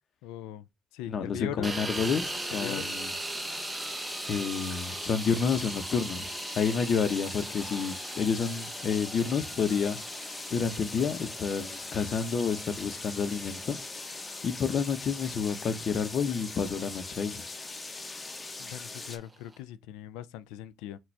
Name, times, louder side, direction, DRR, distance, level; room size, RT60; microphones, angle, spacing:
voice 1, 0.2-0.6 0.9-1.7 2.6-2.9 18.6-21.0, left 12 dB, 90° left, 0.4 m, -40 dB
voice 2, 1.1-3.1 4.3-10.0 10.5-13.8 14.4-17.4, left 6 dB, 55° left, 0.8 m, -29 dB
sound 1, 1.6-19.6, right 2 dB, 20° right, 0.8 m, -41 dB
sound 2, 1.9-19.2, left 3 dB, 25° left, 0.9 m, -41 dB
6.1 x 2.4 x 3.2 m
supercardioid pair, 80°, 0 cm